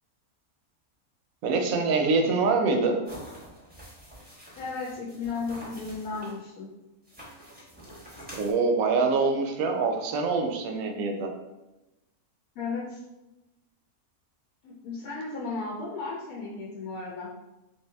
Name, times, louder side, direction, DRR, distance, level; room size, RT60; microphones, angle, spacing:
voice 1, 1.4-3.0 8.4-11.3, right 4 dB, 75° right, 3 dB, 1.0 m, -25 dB
sound 1, 3.0-6.4 7.0-8.5, equal, 10° right, 0.6 m, -46 dB
voice 2, 4.5-6.7 12.6-13.0 14.6-17.3, left 4 dB, 80° left, -3 dB, 1.1 m, -34 dB
3.1 x 2.7 x 3.3 m, 1.0 s
omnidirectional pair, 1.6 m